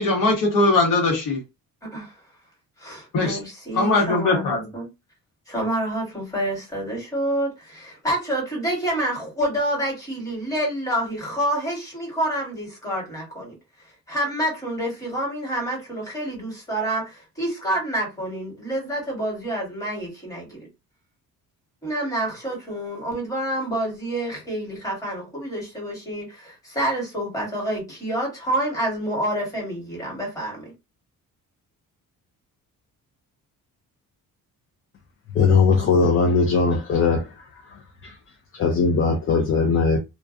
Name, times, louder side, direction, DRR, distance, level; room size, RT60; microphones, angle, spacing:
voice 1, 0.0-1.4 3.1-3.4 3.7-4.6, left 2 dB, 65° left, 1.0 m, -20 dB
voice 2, 2.8-4.9 5.5-13.6 14.1-20.7 21.8-30.7, right 1 dB, 10° left, 1.3 m, -28 dB
voice 3, 35.4-37.2 38.0-38.1 38.5-40.0, left 4 dB, 40° left, 0.4 m, -19 dB
2.3 x 2.2 x 2.4 m
cardioid pair, 150°, 34 cm